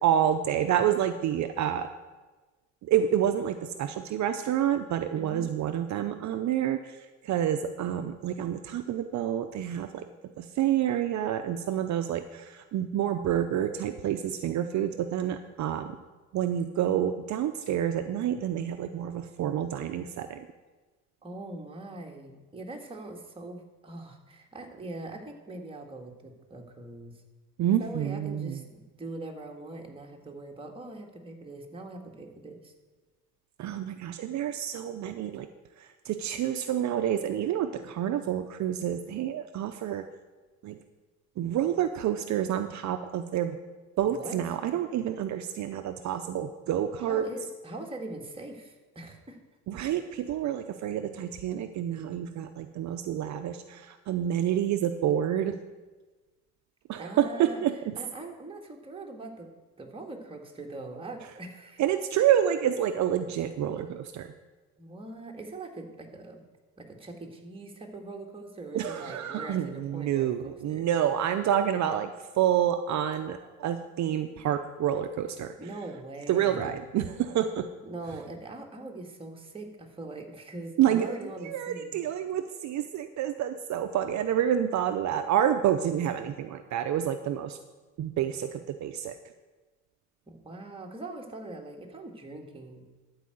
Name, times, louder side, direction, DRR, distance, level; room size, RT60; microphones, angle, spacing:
voice 1, 0.0-1.9 2.8-10.1 10.4-16.0 16.3-20.4 27.6-28.6 33.6-35.5 35.8-40.1 40.6-40.8 41.4-43.6 44.0-47.3 49.7-55.6 56.9-57.7 61.8-64.3 68.7-75.5 76.3-77.7 80.8-87.6 88.0-89.2, right 10 dB, 60° right, 7 dB, 0.6 m, -28 dB
voice 2, 5.2-5.5 21.2-27.1 27.8-32.7 44.0-44.4 47.0-49.4 57.0-57.6 58.0-59.5 59.8-61.8 64.8-66.4 66.8-70.9 75.6-76.9 77.8-82.0 90.3-92.8, right 2 dB, 15° right, 1 dB, 1.7 m, -42 dB
12.5 x 4.8 x 7.8 m, 1.3 s
cardioid pair, 105°, 33 cm